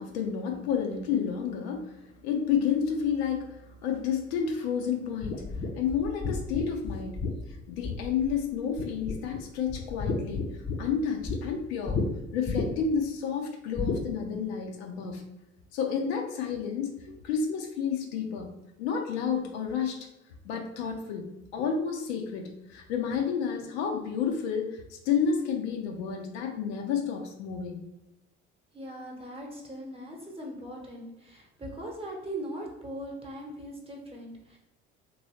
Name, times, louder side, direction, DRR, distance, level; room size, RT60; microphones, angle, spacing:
voice 1, 0.0-5.4 5.7-7.2 7.7-10.5 10.8-12.0 12.3-15.2 15.7-18.5 18.8-20.1 20.4-27.8, left 7 dB, 65° left, 3 dB, 0.6 m, -30 dB
sound 1, 5.2-8.5 8.8-9.4 9.7-11.4 11.9-12.1 12.5-13.0 13.8-14.0, left 4 dB, 25° left, 0.7 m, -32 dB
voice 2, 28.7-34.6, right 1 dB, 15° right, -1 dB, 1.0 m, -40 dB
3.0 x 2.6 x 3.0 m, 0.91 s
figure-of-eight pair, 60°, 36 cm